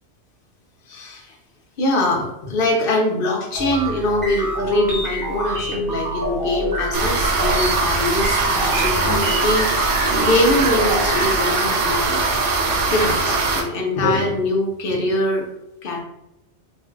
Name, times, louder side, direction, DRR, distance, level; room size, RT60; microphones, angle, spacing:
voice 1, 0.9-1.3 1.8-12.3 12.9-15.5 15.8-16.0, left 1 dB, 55° left, 0 dB, 0.8 m, -23 dB
sound 1, 3.5-11.3, right 1 dB, 20° right, 0.8 m, -27 dB
sound 2, 6.9-13.6, right 3 dB, 80° right, 0.9 m, -21 dB
2.5 x 2.0 x 3.7 m, 0.85 s
omnidirectional pair, 1.2 m